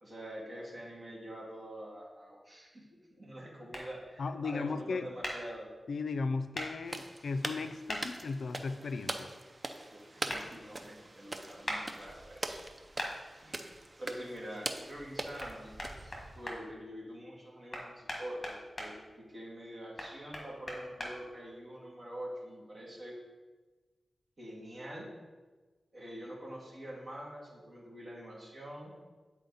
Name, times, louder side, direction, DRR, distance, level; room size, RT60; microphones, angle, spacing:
voice 1, 0.0-5.7 9.9-12.6 13.4-13.7 14.0-15.7 16.3-23.2 24.4-25.1 25.9-28.9, equal, 50° right, -4 dB, 2.2 m, -45 dB
sound 1, 3.7-3.9 5.2-5.4 6.5-6.7 7.9-8.0 10.3-10.4 11.7-11.8 13.0-13.1 15.4-15.5 15.8-16.6 17.7-18.9 20.0-21.1, left 1 dB, 35° left, 1.5 m, -38 dB
voice 2, 4.2-5.1 5.9-9.3, left 4 dB, 80° left, 11 dB, 0.4 m, -36 dB
sound 2, 6.8-16.6, right 2 dB, 30° right, 0.6 m, -42 dB
9.0 x 4.5 x 4.0 m, 1.3 s
wide cardioid pair, 95°, 0 cm